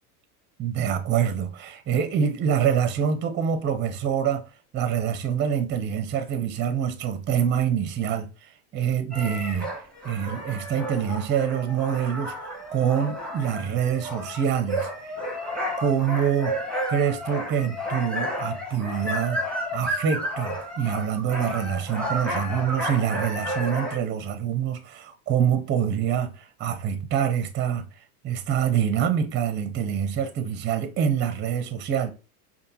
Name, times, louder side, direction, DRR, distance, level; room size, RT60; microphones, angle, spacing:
voice 1, 0.6-4.4 4.7-9.7 10.0-14.9 15.8-16.6 16.9-19.4 19.7-27.8 28.2-32.1, right 8 dB, 25° right, 0.6 m, -25 dB
sound 1, 9.1-24.0, equal, ahead, 1.4 m, -32 dB
5.0 x 2.6 x 2.7 m
supercardioid pair, 110°, 45 cm